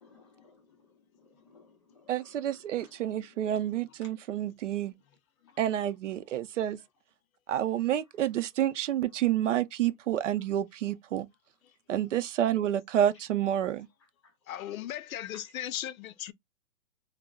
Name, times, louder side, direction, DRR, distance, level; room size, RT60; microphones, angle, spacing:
voice 1, 0.0-4.3 14.0-14.3, left 4 dB, 20° left, 0.5 m, -61 dB
voice 2, 2.1-4.9 5.6-6.8 7.5-11.3 11.9-13.9, right 11 dB, 60° right, 0.5 m, -29 dB
voice 3, 14.5-16.3, left 11 dB, 75° left, 0.5 m, -37 dB
3.5 x 2.0 x 2.3 m
hypercardioid pair, 160°, 42 cm